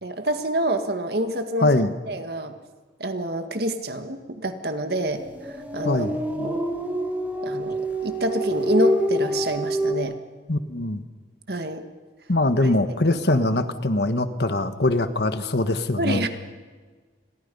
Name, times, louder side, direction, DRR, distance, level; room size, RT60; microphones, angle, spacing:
voice 1, 0.0-1.7 2.1-2.6 3.0-6.1 6.3-6.6 7.4-10.2 11.5-11.8 12.6-13.2 16.0-16.3, right 1 dB, 60° right, 7 dB, 1.9 m, -27 dB
voice 2, 1.6-1.9 5.8-6.1 10.5-11.0 12.3-16.2, left 2 dB, 65° left, 10 dB, 1.4 m, -22 dB
sound 1, 5.2-10.0, right 1 dB, 10° right, 2.0 m, -26 dB
29.5 x 22.5 x 5.5 m, 1.4 s
head